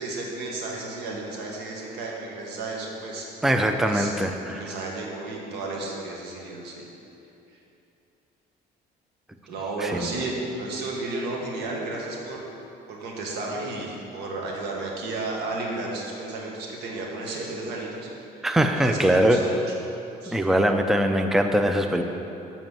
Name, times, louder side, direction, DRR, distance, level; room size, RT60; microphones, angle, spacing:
voice 1, 0.0-3.3 3.8-4.1 4.4-6.8 9.5-12.4 12.9-18.5 18.7-19.7 20.2-20.4, right 2 dB, 85° right, -2 dB, 1.7 m, -33 dB
voice 2, 3.4-4.6 9.8-10.1 18.4-19.4 20.3-22.0, right 1 dB, ahead, 5 dB, 0.5 m, -22 dB
7.6 x 5.3 x 7.5 m, 2.8 s
cardioid pair, 110°, 17 cm